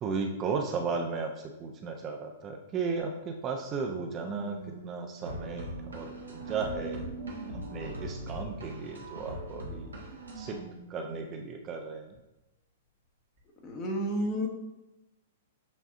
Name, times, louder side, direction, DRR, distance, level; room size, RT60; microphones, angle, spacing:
voice 1, 0.0-4.6 4.8-7.0 7.7-9.9 10.3-10.6 10.9-12.2, right 4 dB, 30° right, 3 dB, 0.5 m, -35 dB
sound 1, 3.0-3.1 4.2-6.2 6.8-8.8 10.0-11.4 12.1-12.2 13.4-13.5, right 3 dB, 50° right, 1.0 m, -47 dB
sound 2, 5.3-10.6, right 1 dB, 80° right, 0.9 m, -41 dB
voice 2, 13.6-14.5, equal, 30° left, 1 dB, 0.9 m, -30 dB
7.0 x 2.6 x 2.5 m, 0.98 s
figure-of-eight pair, 110°, 0 cm